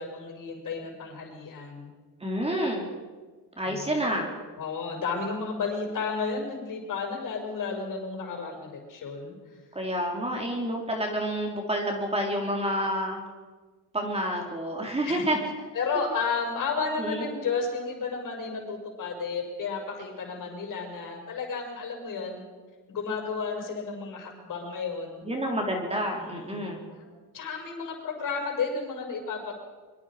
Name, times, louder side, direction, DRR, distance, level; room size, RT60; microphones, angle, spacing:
voice 1, 0.0-1.9 3.6-4.1 4.6-9.3 10.2-10.6 15.0-15.4 15.7-22.4 22.9-25.3 26.2-27.1 27.3-29.6, left 4 dB, 50° left, 2 dB, 6.1 m, -33 dB
voice 2, 2.2-2.9 3.6-4.3 9.7-13.2 13.9-15.4 17.0-17.3 25.2-26.8, equal, 15° right, 1 dB, 3.6 m, -29 dB
24.5 x 24.0 x 5.0 m, 1.4 s
cardioid pair, 135°, 40 cm